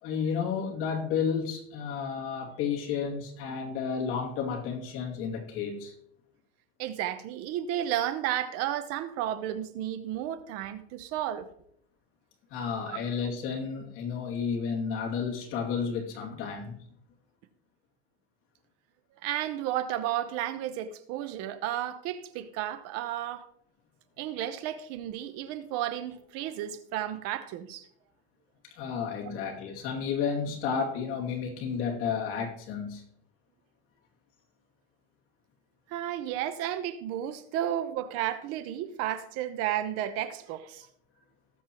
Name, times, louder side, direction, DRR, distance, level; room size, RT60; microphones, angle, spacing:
voice 1, 0.0-5.9 12.5-16.8 28.6-33.0, left 6 dB, 45° left, 2.6 m, -32 dB
voice 2, 6.8-11.5 12.9-13.0 19.2-23.5 24.2-27.9 35.9-40.9, right 11 dB, 50° right, 0.9 m, -33 dB
18.5 x 7.3 x 3.0 m
cardioid pair, 160°, 30 cm